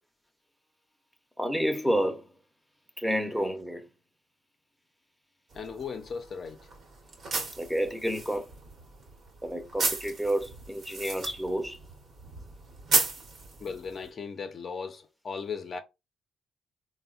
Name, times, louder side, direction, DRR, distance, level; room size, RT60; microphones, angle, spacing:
voice 1, 1.4-2.3 3.0-3.9 7.6-8.5 9.4-11.8, equal, ahead, 0.6 m, -29 dB
voice 2, 5.5-6.6 13.6-15.8, left 5 dB, 45° left, 0.5 m, -37 dB
sound 1, 5.5-14.1, right 3 dB, 55° right, 0.9 m, -34 dB
3.4 x 2.0 x 2.3 m
cardioid pair, 90°, 0 cm